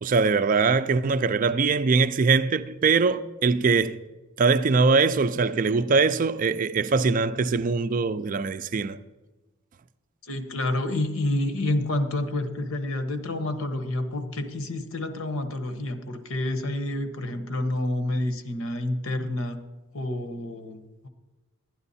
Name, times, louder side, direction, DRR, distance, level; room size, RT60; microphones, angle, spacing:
voice 1, 0.0-4.0 4.4-9.0, right 4 dB, 40° right, 0.4 m, -22 dB
voice 2, 10.2-19.6 19.9-21.1, left 1 dB, 80° left, 1.1 m, -29 dB
12.5 x 9.8 x 4.1 m
head